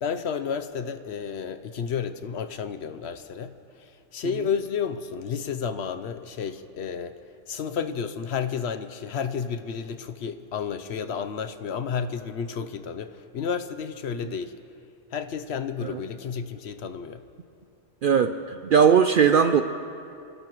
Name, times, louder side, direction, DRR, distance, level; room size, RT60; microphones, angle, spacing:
voice 1, 0.0-7.2 7.5-14.6 15.1-17.2, left 6 dB, 65° left, 10 dB, 0.9 m, -31 dB
voice 2, 18.0-19.6, right 7 dB, 60° right, 8 dB, 0.5 m, -19 dB
26.0 x 18.0 x 3.0 m, 2.5 s
omnidirectional pair, 1.3 m